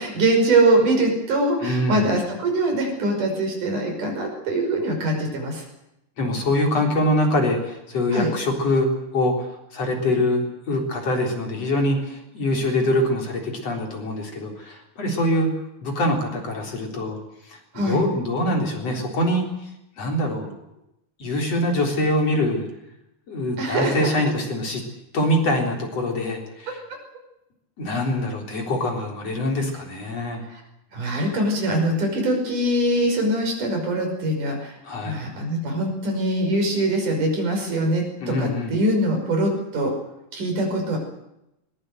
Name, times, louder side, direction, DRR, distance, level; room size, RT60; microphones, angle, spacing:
voice 1, 0.0-5.6 8.1-8.3 17.7-18.0 23.6-24.1 30.5-30.6 30.9-34.7 35.1-39.9 40.3-41.0, right 1 dB, 65° right, 3 dB, 7.1 m, -23 dB
voice 2, 1.6-2.0 6.2-15.5 15.8-17.2 17.4-19.7 20.0-20.5 21.2-22.7 23.3-24.8 25.1-26.8 27.8-30.4 34.8-35.2 38.2-38.8, left 1 dB, 45° left, 1 dB, 4.8 m, -24 dB
21.5 x 21.0 x 8.0 m, 0.87 s
omnidirectional pair, 4.0 m